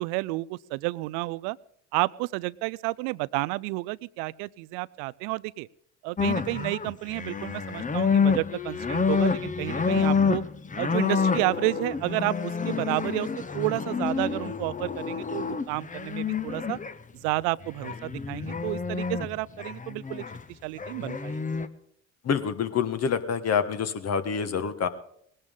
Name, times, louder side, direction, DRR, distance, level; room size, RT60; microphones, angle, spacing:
voice 1, 0.0-1.6 1.9-5.7 6.0-10.4 10.8-13.3 13.5-16.8 17.1-20.2 20.6-21.4, right 22 dB, 60° right, 21 dB, 0.5 m, -31 dB
sound 1, 6.2-16.9 17.8-19.3 19.6-20.4 20.8-21.7, left 5 dB, 20° left, 1.0 m, -28 dB
voice 2, 22.2-24.9, left 7 dB, 40° left, 10 dB, 1.5 m, -27 dB
20.0 x 17.5 x 3.8 m, 0.68 s
figure-of-eight pair, 55°, 37 cm